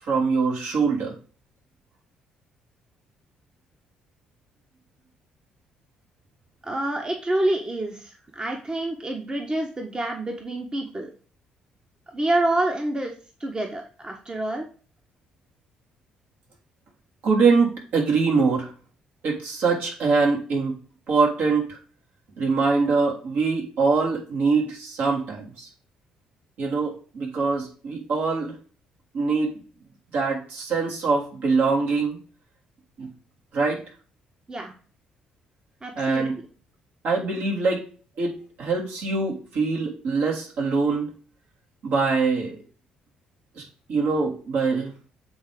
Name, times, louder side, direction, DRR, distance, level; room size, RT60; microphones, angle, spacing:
voice 1, 0.1-1.1 17.2-18.7 19.2-20.8 21.1-21.8 22.4-25.7 26.6-28.5 29.1-29.5 30.1-32.2 33.0-33.1 33.5-33.8 36.0-36.4 37.0-37.8 38.2-41.1 41.8-42.6 43.6-44.9, right 4 dB, 65° right, -2 dB, 3.2 m, -23 dB
voice 2, 6.6-11.1 12.1-13.1 13.4-14.7 34.5-34.7 35.8-36.3, right 1 dB, 25° right, 3 dB, 1.4 m, -27 dB
7.8 x 3.7 x 5.1 m, 0.40 s
hypercardioid pair, 50°, 3 cm